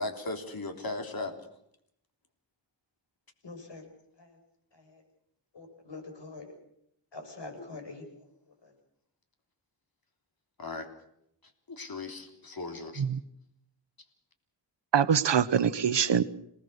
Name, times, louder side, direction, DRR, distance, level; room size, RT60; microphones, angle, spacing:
voice 1, 0.0-1.3 7.6-7.7 10.6-10.9 11.7-13.0, left 2 dB, 50° left, 5 dB, 3.4 m, -37 dB
voice 2, 3.4-3.8 4.2-4.4 4.7-5.0 5.5-6.5 7.1-8.3 8.6-8.7, left 3 dB, 65° left, 4 dB, 6.6 m, -45 dB
voice 3, 14.9-16.2, right 8 dB, 70° right, 14 dB, 1.1 m, -24 dB
27.5 x 18.5 x 6.7 m, 0.75 s
wide cardioid pair, 90°, 45 cm